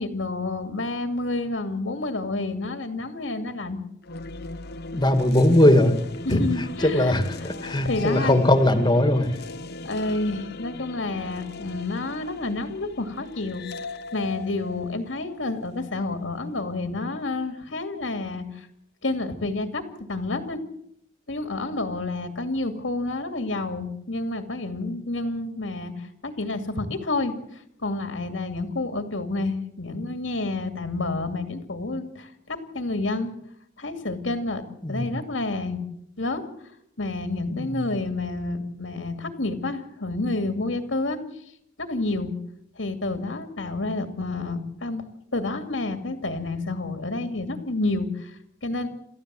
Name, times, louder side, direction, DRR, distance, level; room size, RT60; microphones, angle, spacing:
voice 1, 0.0-3.8 6.2-7.2 7.6-8.4 9.8-18.7 19.0-20.6 21.3-33.3 33.8-35.8 36.2-36.7 37.0-41.2 41.8-42.3 42.8-45.0 45.3-48.9, left 2 dB, 75° left, 7 dB, 2.5 m, -29 dB
sound 1, 4.0-16.2, left 2 dB, 55° left, 1.1 m, -38 dB
voice 2, 4.9-6.0 6.3-6.4 6.8-9.3 34.8-35.1 37.5-37.9, left 1 dB, 25° left, 9 dB, 2.1 m, -20 dB
28.0 x 14.5 x 7.7 m, 0.75 s
head